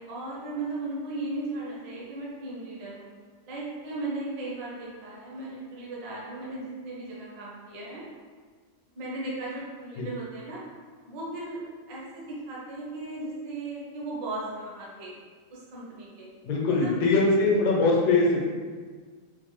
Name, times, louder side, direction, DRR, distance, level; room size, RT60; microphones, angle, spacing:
voice 1, 0.0-3.1 3.5-8.0 8.9-10.6 11.1-15.1 15.5-16.3 16.6-17.0, right 2 dB, 70° right, -5 dB, 1.5 m, -36 dB
voice 2, 16.4-18.4, left 3 dB, 90° left, -3 dB, 1.5 m, -22 dB
4.6 x 2.0 x 3.1 m, 1.5 s
omnidirectional pair, 2.1 m